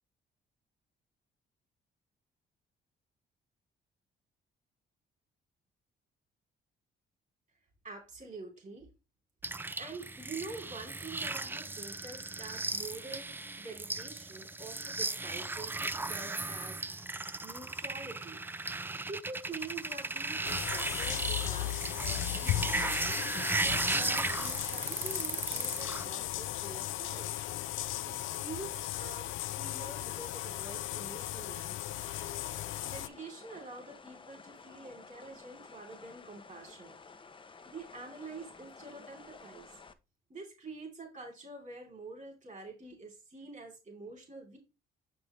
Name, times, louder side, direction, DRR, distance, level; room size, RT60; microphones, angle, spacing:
voice 1, 7.8-8.9 9.8-13.3 13.6-16.8 17.4-18.4 19.1-22.9 23.6-27.4 28.0-32.2 32.8-37.0 37.6-39.8 40.3-44.6, right 3 dB, 40° right, 1 dB, 3.3 m, -46 dB
sound 1, 9.4-26.0, right 2 dB, 10° right, 0.3 m, -36 dB
sound 2, 20.4-33.1, left 15 dB, 80° left, 0.4 m, -36 dB
sound 3, 31.9-39.9, left 4 dB, 25° left, 0.7 m, -53 dB
6.8 x 5.4 x 3.2 m, 0.27 s
cardioid pair, 90°, 20 cm